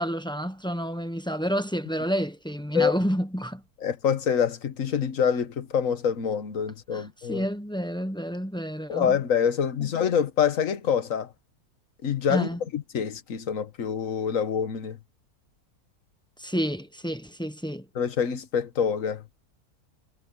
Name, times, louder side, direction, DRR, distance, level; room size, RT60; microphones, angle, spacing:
voice 1, 0.0-3.6 6.9-9.2 9.8-9.9 12.3-12.6 16.4-17.9, equal, 5° left, 0.8 m, -29 dB
voice 2, 3.8-7.5 8.9-11.3 12.0-15.0 17.9-19.2, left 7 dB, 50° left, 1.6 m, -26 dB
omnidirectional pair, 1.8 m